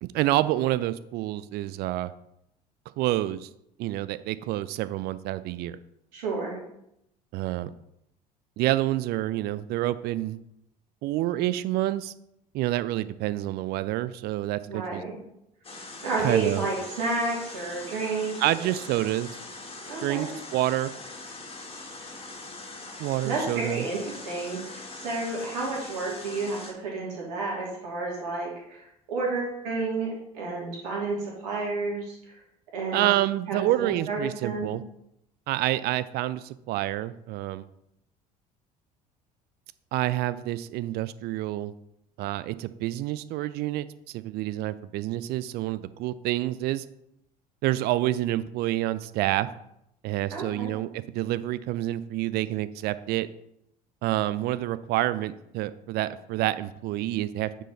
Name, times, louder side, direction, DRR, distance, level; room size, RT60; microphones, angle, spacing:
voice 1, 0.0-2.1 3.0-3.5 3.8-5.8 7.3-7.7 8.6-10.4 11.0-12.1 12.5-15.0 16.2-16.7 18.4-19.3 20.0-20.9 23.0-23.9 32.9-34.8 35.5-37.7 39.9-41.7 42.2-46.8 47.6-49.5 50.0-53.3 54.0-57.5, right 15 dB, 50° right, 16 dB, 0.5 m, -28 dB
voice 2, 6.1-6.6 14.7-15.2 16.0-18.7 19.9-20.3 23.2-32.4 32.7-33.1 33.5-34.7 50.3-50.7, right 3 dB, 65° right, -3 dB, 2.8 m, -31 dB
sound 1, 15.6-26.7, left 3 dB, 25° left, 2.0 m, -42 dB
8.9 x 4.6 x 4.1 m, 0.79 s
figure-of-eight pair, 60°, 21 cm